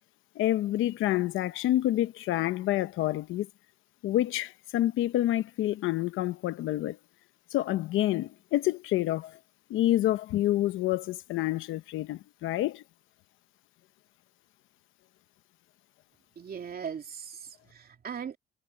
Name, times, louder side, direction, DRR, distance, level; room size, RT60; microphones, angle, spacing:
voice 1, 0.3-3.5 4.0-7.0 7.5-9.4 9.7-12.8, left 14 dB, 90° left, 0.8 m, -28 dB
voice 2, 16.4-18.4, right 7 dB, 50° right, 2.8 m, -39 dB
cardioid pair, 90°, 20 cm